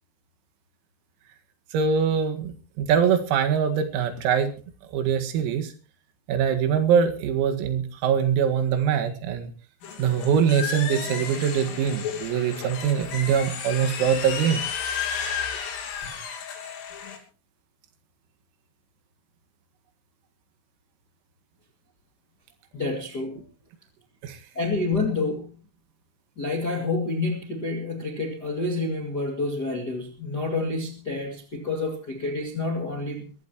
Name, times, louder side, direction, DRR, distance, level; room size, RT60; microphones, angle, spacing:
voice 1, 1.7-4.5 4.9-5.7 6.3-9.5 10.0-14.6 24.2-24.4, right 7 dB, 85° right, 7 dB, 4.6 m, -23 dB
sound 1, 9.8-17.2, left 7 dB, 70° left, 5.3 m, -33 dB
voice 2, 22.7-23.4 24.5-25.6 26.4-33.3, left 3 dB, 45° left, 2 dB, 1.2 m, -28 dB
22.5 x 15.0 x 3.0 m, 0.35 s
omnidirectional pair, 6.0 m